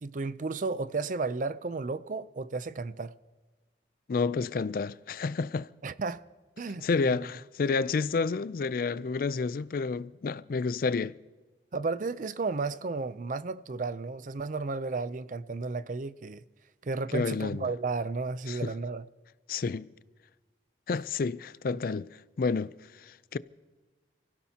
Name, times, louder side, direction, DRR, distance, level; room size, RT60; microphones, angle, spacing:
voice 1, 0.0-3.1 5.8-6.2 6.6-7.2 11.7-16.4 16.8-19.0, right 3 dB, 45° right, 0.5 m, -33 dB
voice 2, 4.1-5.7 6.8-11.2 17.1-17.7 18.5-18.7 19.5-19.9 20.9-22.7 23.0-23.4, left 4 dB, 55° left, 0.4 m, -30 dB
29.5 x 16.0 x 2.9 m
head